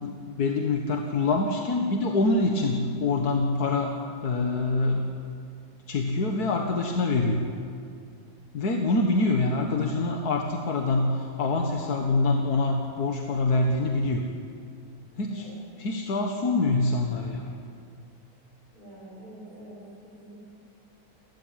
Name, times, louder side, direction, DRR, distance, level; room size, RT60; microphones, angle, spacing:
voice 1, 0.0-5.1 5.9-7.5 8.5-14.3 15.2-15.5 15.8-17.6, left 3 dB, 90° left, 2 dB, 2.0 m, -25 dB
voice 2, 18.7-20.5, right 1 dB, 80° right, -8 dB, 7.2 m, -46 dB
30.0 x 13.5 x 9.3 m, 2.3 s
omnidirectional pair, 1.6 m